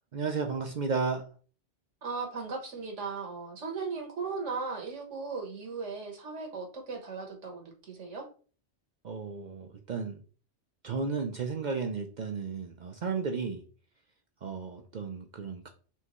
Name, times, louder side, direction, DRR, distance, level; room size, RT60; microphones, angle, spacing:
voice 1, 0.1-1.2 9.0-10.2 10.8-13.6 14.4-15.7, right 5 dB, 55° right, 4 dB, 0.5 m, -33 dB
voice 2, 2.0-8.3, right 4 dB, 75° right, 2 dB, 1.4 m, -37 dB
4.4 x 3.3 x 3.0 m, 0.38 s
omnidirectional pair, 1.2 m